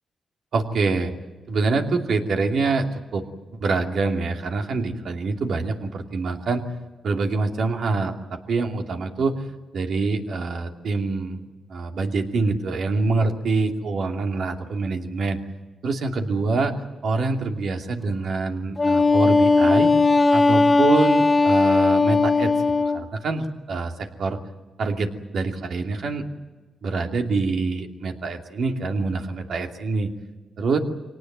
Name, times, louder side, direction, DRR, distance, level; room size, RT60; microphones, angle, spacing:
voice 1, 0.5-1.1 1.5-2.9 3.1-3.3 3.5-6.6 7.0-9.4 9.7-11.4 11.7-15.4 15.8-16.7 17.0-19.9 20.3-22.5 22.9-24.4 24.8-26.3 26.8-30.1 30.6-30.8, right 3 dB, 70° right, 3 dB, 2.7 m, -25 dB
Wind instrument woodwind instrument, 18.8-23.0, left 3 dB, 30° left, 1.8 m, -18 dB
24.5 x 18.5 x 9.3 m, 1.3 s
cardioid pair, 75°, 0 cm